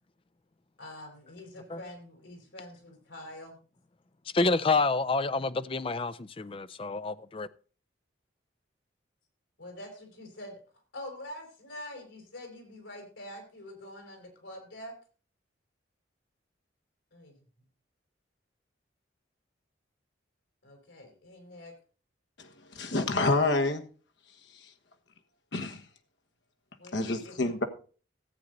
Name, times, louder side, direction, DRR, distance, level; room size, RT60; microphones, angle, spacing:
voice 1, 0.8-3.6 9.6-10.6 10.9-14.9 17.1-17.4 20.6-21.7 26.8-27.7, left 1 dB, 85° left, 4.5 m, -45 dB
voice 2, 4.3-7.5, left 3 dB, 30° left, 0.5 m, -28 dB
voice 3, 22.4-23.8 25.5-25.8 26.9-27.6, left 2 dB, 65° left, 1.4 m, -28 dB
14.5 x 8.0 x 3.9 m
head